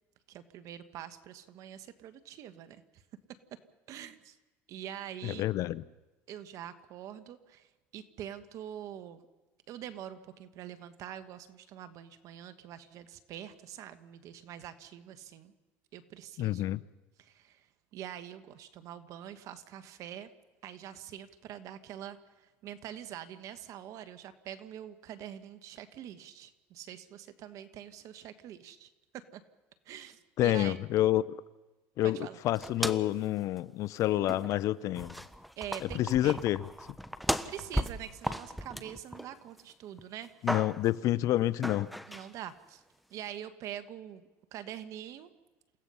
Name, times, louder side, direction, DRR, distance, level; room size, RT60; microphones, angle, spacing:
voice 1, 0.3-3.0 3.9-4.4 4.7-5.4 6.3-9.3 9.7-15.5 15.9-16.7 17.2-20.3 20.6-29.4 29.8-30.8 32.0-32.4 35.6-36.4 37.3-40.6 42.1-42.8 43.1-45.3, right 10 dB, 60° right, 1.4 m, -45 dB
voice 2, 5.2-5.8 16.4-16.8 30.4-31.4 32.0-35.1 35.8-36.6 40.4-41.9, left 14 dB, 60° left, 0.7 m, -28 dB
sound 1, 32.6-33.2 33.6-33.7 34.3-34.7 34.9-39.6 40.0-41.0 41.6-42.3, equal, ahead, 1.1 m, -36 dB
28.5 x 16.5 x 5.6 m
supercardioid pair, 85°, 6 cm